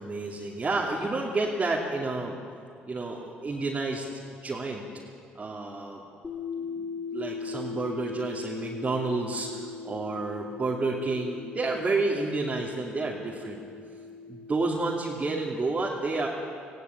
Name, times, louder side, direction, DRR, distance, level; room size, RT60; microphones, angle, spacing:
voice 1, 0.0-2.3 2.8-4.1 4.4-4.8 5.3-6.0 6.6-13.6 14.3-16.3, right 3 dB, 30° right, -3 dB, 2.9 m, -30 dB
sound 1, 6.2-15.1, left 5 dB, 30° left, 2.3 m, -39 dB
18.5 x 16.5 x 8.7 m, 2.3 s
supercardioid pair, 70°, 4 cm